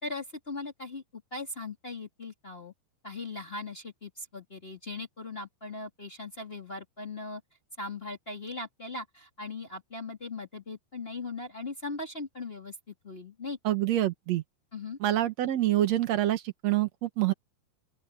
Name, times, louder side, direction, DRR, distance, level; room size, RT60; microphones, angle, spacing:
voice 1, 0.0-2.7 3.0-7.4 7.8-13.6 14.7-15.0, left 3 dB, 25° left, 1.4 m, -39 dB
voice 2, 13.6-14.4 15.0-17.3, right 13 dB, 75° right, 1.5 m, -26 dB
open air
omnidirectional pair, 5.1 m